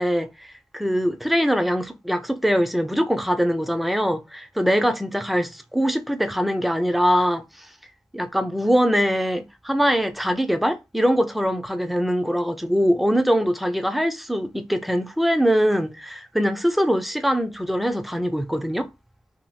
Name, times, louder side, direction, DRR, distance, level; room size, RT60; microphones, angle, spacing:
voice 1, 0.0-7.7 8.1-18.9, equal, ahead, 0.4 m, -22 dB
2.6 x 2.6 x 3.3 m
cardioid pair, 65°, 9 cm